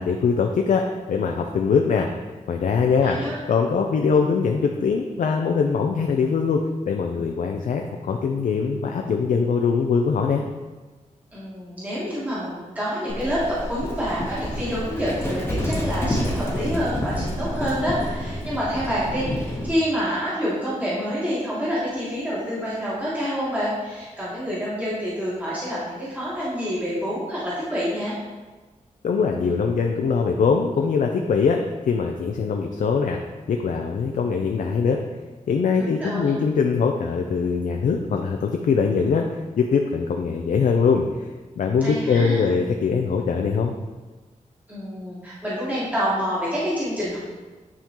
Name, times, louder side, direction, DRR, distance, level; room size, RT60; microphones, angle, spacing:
voice 1, 0.0-2.1 2.5-3.2 3.5-10.4 29.0-31.6 31.9-33.2 33.5-35.0 35.5-39.2 39.6-41.1 41.6-43.7, left 5 dB, 75° left, 3 dB, 0.5 m, -22 dB
voice 2, 3.0-3.4 11.3-28.1 35.8-36.4 41.8-42.5 44.7-47.2, equal, 10° right, -9 dB, 1.4 m, -27 dB
Livestock farm animals working animals, 13.1-19.8, equal, 20° left, 1.0 m, -29 dB
9.7 x 3.7 x 2.9 m, 1.3 s
wide cardioid pair, 165°, 13 cm